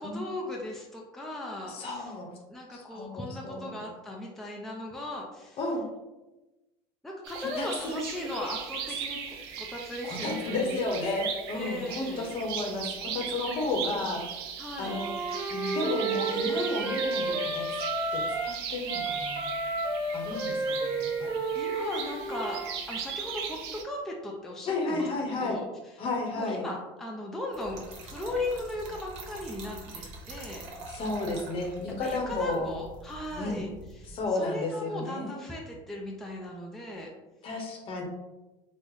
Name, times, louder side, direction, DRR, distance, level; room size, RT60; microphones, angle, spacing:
voice 1, 0.0-2.1 2.5-5.6 7.0-10.8 11.5-12.3 13.5-14.2 14.6-15.0 21.5-22.6 22.9-25.6 26.3-30.6 32.0-33.7 34.0-37.1, left 1 dB, 5° left, -2 dB, 0.4 m, -38 dB
voice 2, 1.7-2.3 2.7-3.9 5.6-5.8 7.6-8.0 10.0-14.2 14.8-15.1 15.5-17.8 18.1-19.5 20.1-21.3 24.7-25.6 26.0-26.6 30.9-32.7 33.4-33.6 34.1-35.4 37.4-38.0, left 2 dB, 45° left, 2 dB, 0.8 m, -32 dB
sound 1, 7.2-23.8, right 7 dB, 90° right, 0.5 m, -38 dB
Wind instrument woodwind instrument, 14.8-18.6 18.9-22.7, right 3 dB, 45° right, 1.0 m, -31 dB
Trickle dribble / Fill (with liquid), 27.5-34.3, right 2 dB, 65° right, 0.9 m, -45 dB
3.6 x 2.0 x 3.1 m, 1.1 s
supercardioid pair, 120°, 13 cm